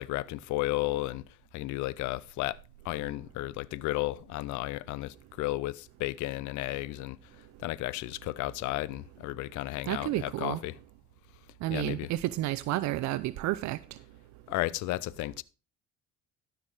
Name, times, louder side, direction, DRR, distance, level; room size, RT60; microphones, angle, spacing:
voice 1, 0.0-2.6 2.8-10.8 11.7-12.1 14.5-15.4, left 18 dB, 75° left, 0.6 m, -33 dB
voice 2, 9.9-10.6 11.6-13.8, right 16 dB, 70° right, 0.6 m, -31 dB
12.5 x 6.0 x 4.8 m
supercardioid pair, 90°, 30 cm